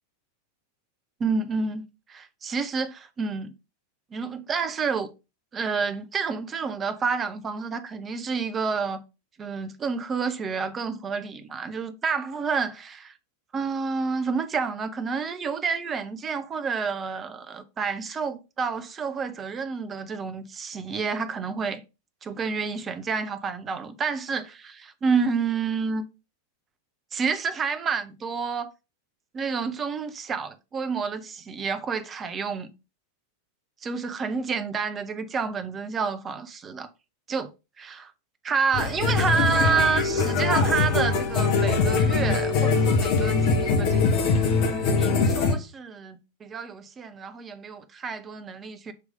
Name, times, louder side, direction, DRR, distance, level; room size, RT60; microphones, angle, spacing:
voice 1, 1.2-1.8 2.1-3.5 4.1-5.1 5.5-9.0 9.4-13.1 13.5-21.8 22.2-26.0 27.1-28.7 29.3-32.7 33.8-36.9 37.3-37.5 37.8-38.1 38.4-44.5 45.0-48.9, right 5 dB, 20° right, 0.9 m, -29 dB
sound 1, 38.7-45.6, left 4 dB, 45° left, 1.2 m, -22 dB
6.9 x 3.2 x 5.1 m
figure-of-eight pair, 90°, 0 cm